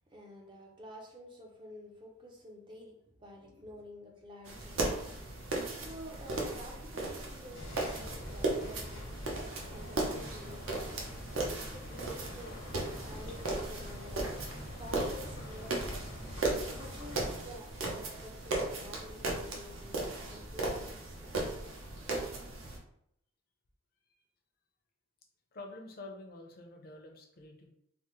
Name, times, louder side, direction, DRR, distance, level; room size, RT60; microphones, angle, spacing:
voice 1, 0.1-9.2 9.7-15.9 16.4-21.6, left 1 dB, 25° right, 0 dB, 0.4 m, -50 dB
sound 1, 4.4-22.8, right 2 dB, 75° right, 0.6 m, -37 dB
sound 2, 7.5-17.4, left 1 dB, 75° left, 0.9 m, -45 dB
voice 2, 25.5-27.7, left 2 dB, 50° left, 1 dB, 0.6 m, -48 dB
3.4 x 2.0 x 2.9 m, 0.75 s
head